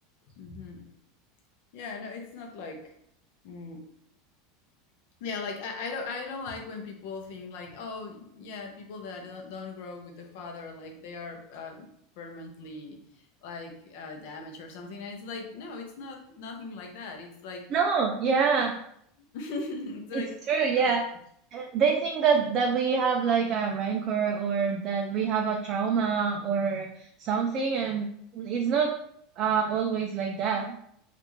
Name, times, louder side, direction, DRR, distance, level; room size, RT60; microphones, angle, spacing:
voice 1, 0.3-0.9 1.7-2.9 3.4-3.8 5.2-17.7 19.3-21.0, left 4 dB, 60° left, 3 dB, 0.7 m, -39 dB
voice 2, 17.7-18.7 20.1-21.0 21.5-28.1 28.3-28.9 29.4-30.7, right 6 dB, 30° right, 1 dB, 0.3 m, -26 dB
3.3 x 2.4 x 3.1 m, 0.70 s
supercardioid pair, 170°, 0 cm